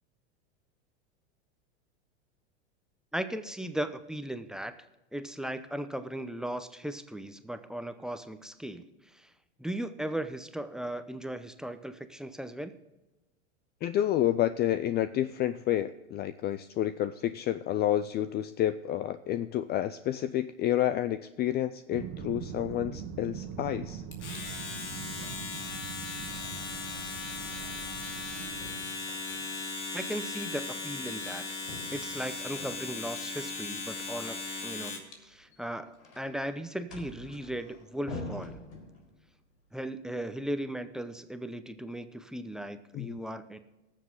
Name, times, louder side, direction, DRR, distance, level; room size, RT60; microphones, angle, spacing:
voice 1, 3.1-4.7 5.1-9.3 9.6-12.7 29.9-31.4 31.9-34.4 34.6-34.9 35.2-38.6 39.7-43.6, right 1 dB, ahead, 9 dB, 0.7 m, -37 dB
voice 2, 13.8-24.0 42.9-43.2, left 12 dB, 30° left, 13 dB, 0.4 m, -29 dB
sound 1, 21.9-28.8, right 8 dB, 50° right, 1.5 m, -42 dB
Domestic sounds home sounds, 24.1-35.1, left 3 dB, 85° left, 2.5 m, -38 dB
sound 2, 24.9-25.5 25.8-28.3 28.6-29.8 31.6-33.2 35.2-39.4, left 2 dB, 65° left, 4.3 m, -47 dB
19.0 x 7.3 x 3.8 m, 1.0 s
hypercardioid pair, 110°, 35 cm